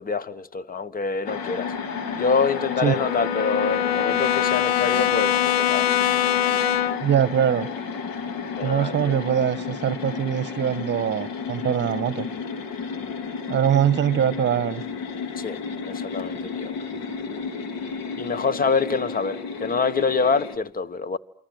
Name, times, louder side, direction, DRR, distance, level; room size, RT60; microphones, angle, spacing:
voice 1, 0.0-1.7 2.1-5.9 8.5-9.1 15.4-16.7 18.2-21.2, left 5 dB, 30° left, 1.4 m, -26 dB
sound 1, 1.3-20.6, left 5 dB, 65° left, 3.5 m, -32 dB
Brass instrument, 1.6-7.1, left 11 dB, 85° left, 1.2 m, -24 dB
voice 2, 7.0-7.7 8.6-12.3 13.5-14.8, right 9 dB, 35° right, 1.2 m, -23 dB
28.0 x 24.5 x 7.9 m
hypercardioid pair, 75°, 30 cm